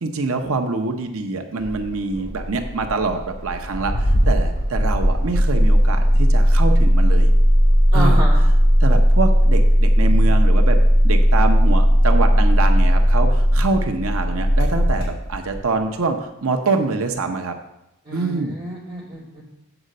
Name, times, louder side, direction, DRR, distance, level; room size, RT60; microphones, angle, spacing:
voice 1, 0.0-7.3 7.9-8.2 8.8-10.8 11.0-17.6 18.1-18.6, right 3 dB, 80° right, 5 dB, 0.8 m, -25 dB
Engine starting, 1.6-15.7, equal, 55° left, 3.4 m, -16 dB
voice 2, 7.9-8.4 18.0-19.4, right 1 dB, 25° right, -5 dB, 3.1 m, -30 dB
7.9 x 5.0 x 6.5 m, 0.86 s
head